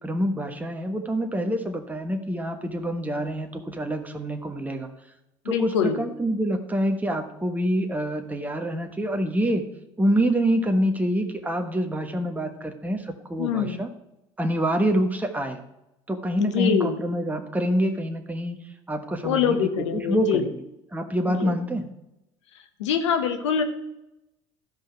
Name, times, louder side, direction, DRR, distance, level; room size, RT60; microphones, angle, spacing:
voice 1, 0.0-4.9 5.4-9.6 10.0-13.9 14.4-15.6 16.1-18.6 18.9-20.5 20.9-21.9, right 1 dB, 10° right, 4 dB, 1.3 m, -26 dB
voice 2, 5.4-6.0 13.4-13.8 16.4-16.9 19.2-20.5 21.3-21.5 22.8-23.6, left 7 dB, 80° left, 8 dB, 1.1 m, -24 dB
13.5 x 5.3 x 5.9 m, 0.89 s
hypercardioid pair, 65°, 15 cm